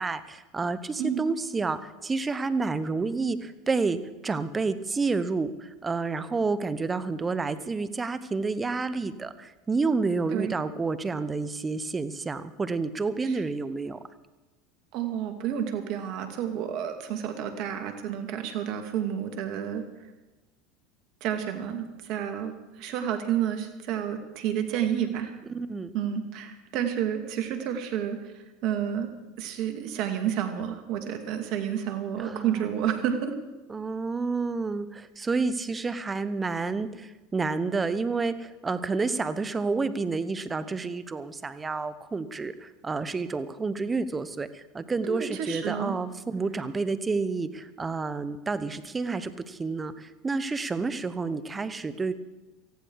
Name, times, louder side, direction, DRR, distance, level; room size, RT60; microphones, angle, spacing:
voice 1, 0.0-14.0 25.5-25.9 32.2-32.7 33.7-52.1, right 4 dB, 20° right, 13 dB, 1.2 m, -29 dB
voice 2, 14.9-19.8 21.2-25.3 25.9-28.3 28.6-29.1 29.4-33.4 45.0-46.0, right 9 dB, 60° right, 7 dB, 2.4 m, -30 dB
19.0 x 15.0 x 4.8 m, 1.1 s
hypercardioid pair, 90°, 0 cm